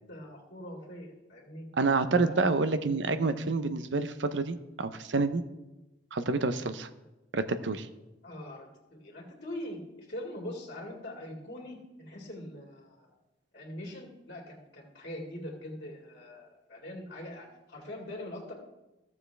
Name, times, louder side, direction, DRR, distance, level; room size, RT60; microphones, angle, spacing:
voice 1, 0.0-1.7 2.1-2.5 8.2-13.1 13.5-18.5, left 1 dB, 55° left, -2 dB, 2.0 m, -43 dB
voice 2, 1.8-5.4 6.1-6.9 7.3-7.9, right 3 dB, 80° right, 11 dB, 0.7 m, -28 dB
15.0 x 7.1 x 3.3 m, 1.0 s
head